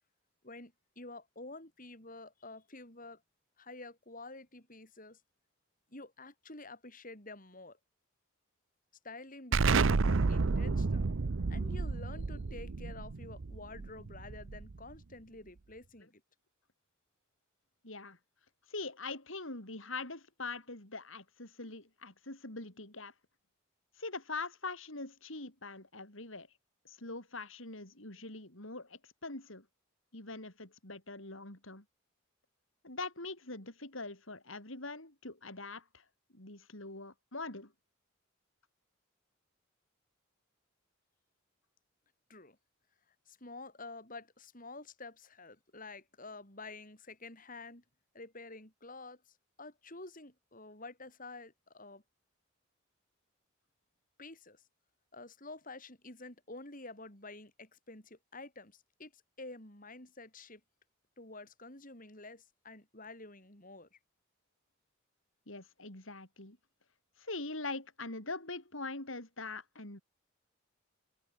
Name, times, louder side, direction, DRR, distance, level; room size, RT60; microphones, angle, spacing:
voice 1, 0.4-3.2 3.6-5.2 5.9-7.8 9.0-11.0 11.5-16.2 42.3-42.6 43.3-47.8 48.1-52.0 54.2-54.6 55.1-60.6 61.2-64.0, left 2 dB, 40° left, 7.7 m, -49 dB
Explosion, 9.5-14.9, right 4 dB, 65° right, 0.7 m, -31 dB
voice 2, 17.8-18.2 18.7-23.1 24.0-26.5 26.9-29.6 30.1-31.8 32.8-36.0 36.3-37.7 65.5-66.6 67.2-70.0, left 3 dB, 70° left, 5.6 m, -43 dB
head